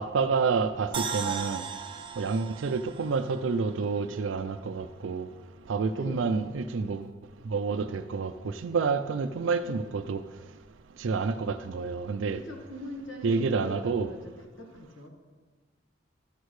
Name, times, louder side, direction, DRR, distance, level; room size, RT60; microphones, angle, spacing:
voice 1, 0.0-1.6 2.2-5.3 5.7-7.1 7.5-10.2 11.0-12.4 13.2-14.1, right 4 dB, 85° right, 0.4 m, -29 dB
sound 1, 0.9-4.1 4.5-4.6, right 6 dB, 25° right, 0.4 m, -37 dB
voice 2, 5.9-6.3 12.3-15.1, left 1 dB, 80° left, 1.5 m, -42 dB
12.0 x 8.3 x 3.2 m
head